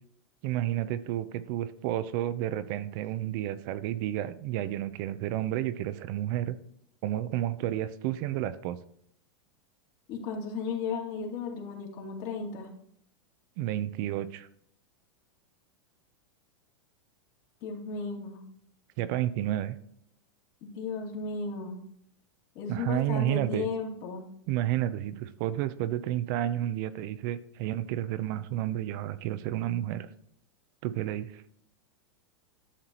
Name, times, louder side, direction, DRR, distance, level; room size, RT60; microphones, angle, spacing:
voice 1, 0.4-6.6 7.0-8.8 13.6-14.5 19.0-19.8 22.7-23.7 24.5-30.1 30.8-31.4, right 13 dB, 50° right, 13 dB, 0.6 m, -31 dB
voice 2, 10.1-12.7 17.6-18.4 20.6-21.8 22.5-24.3, left 4 dB, 50° left, 0 dB, 2.4 m, -35 dB
11.5 x 6.6 x 3.0 m, 0.67 s
supercardioid pair, 130°, 14 cm